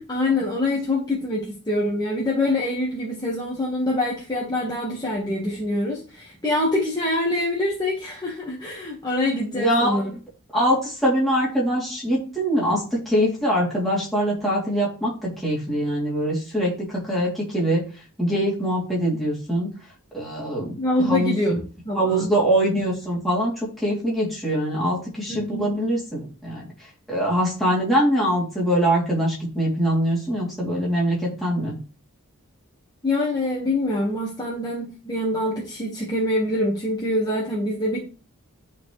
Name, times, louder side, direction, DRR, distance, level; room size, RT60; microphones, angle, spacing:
voice 1, 0.0-10.1 20.6-22.3 25.3-25.7 33.0-38.0, left 1 dB, 20° left, -4 dB, 1.4 m, -25 dB
voice 2, 9.5-10.1 10.5-17.8 18.2-19.7 20.1-21.4 21.9-31.7, equal, ahead, -6 dB, 2.9 m, -23 dB
11.0 x 4.5 x 3.2 m, 0.37 s
head